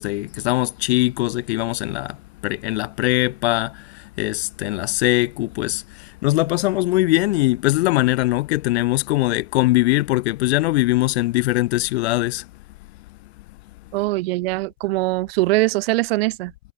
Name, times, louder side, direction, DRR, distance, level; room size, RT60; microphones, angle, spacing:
voice 1, 0.0-12.5, left 18 dB, 85° left, 2.2 m, -21 dB
voice 2, 13.9-16.7, right 20 dB, 70° right, 3.1 m, -22 dB
supercardioid pair, 180°, 31 cm